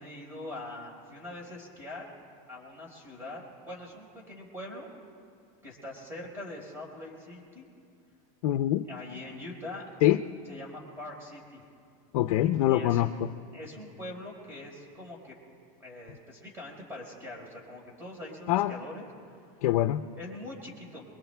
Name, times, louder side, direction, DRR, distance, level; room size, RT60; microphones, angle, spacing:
voice 1, 0.0-2.0 2.5-4.9 5.6-7.7 8.9-9.8 10.5-11.7 12.7-13.0 13.5-15.4 15.8-19.1 20.2-21.0, left 1 dB, 10° right, -2 dB, 4.5 m, -43 dB
voice 2, 8.4-8.9 10.0-10.2 12.1-13.3 18.5-18.7 19.6-20.0, left 13 dB, 85° left, 9 dB, 0.5 m, -24 dB
27.5 x 22.5 x 2.3 m, 2.4 s
supercardioid pair, 140°, 19 cm